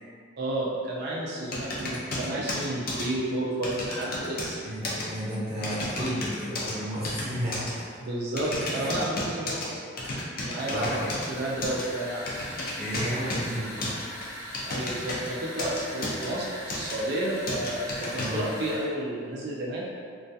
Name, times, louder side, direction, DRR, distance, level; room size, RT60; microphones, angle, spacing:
voice 1, 0.4-4.6 8.0-9.8 10.4-11.0 11.3-12.2 14.6-19.8, right 1 dB, 50° right, -4 dB, 0.3 m, -31 dB
sound 1, 1.5-3.1 3.6-4.6 4.8-5.0 5.6-6.7 7.0-7.7 8.4-9.7 10.0-11.3 11.6-11.8 12.3-13.5 13.8-15.3 15.6-16.3 16.7-16.9 17.5-18.3, left 2 dB, 45° left, 0.4 m, -32 dB
voice 2, 4.6-8.0 8.7-9.0 10.7-11.1 12.7-13.9 18.1-18.5, equal, 30° right, -11 dB, 0.8 m, -32 dB
sound 2, 10.5-18.9, equal, 15° left, 0.7 m, -41 dB
2.2 x 2.2 x 2.6 m, 2.1 s
head